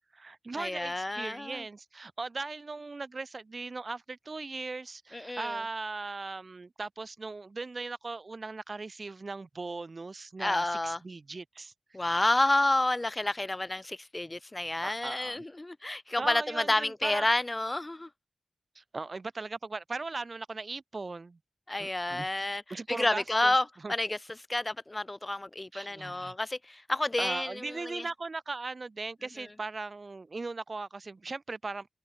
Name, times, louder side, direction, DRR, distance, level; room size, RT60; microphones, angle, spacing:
voice 1, 0.0-11.7 14.8-15.4 16.2-17.3 18.7-21.4 21.8-22.3 22.7-23.6 23.8-23.9 25.7-26.3 27.2-31.9, right 3 dB, 40° right, 1.4 m, -38 dB
voice 2, 0.6-1.6 5.1-5.6 10.4-11.0 11.9-18.1 21.7-22.6 22.9-24.2 24.5-28.0, left 2 dB, 20° left, 1.3 m, -30 dB
wide cardioid pair, 125°, 0 cm